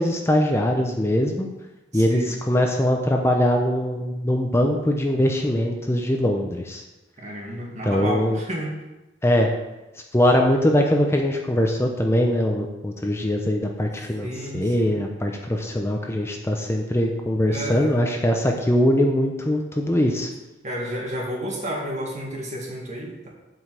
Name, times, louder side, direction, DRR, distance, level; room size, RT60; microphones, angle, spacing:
voice 1, 0.0-1.5 1.9-6.8 7.8-8.4 9.2-9.5 10.1-14.3 14.5-20.3, left 1 dB, 15° left, 2 dB, 0.7 m, -22 dB
voice 2, 1.9-2.3 7.2-8.7 14.2-15.0 17.5-18.0 20.6-23.3, equal, 40° right, -1 dB, 2.2 m, -31 dB
7.9 x 5.2 x 7.5 m, 1.0 s
head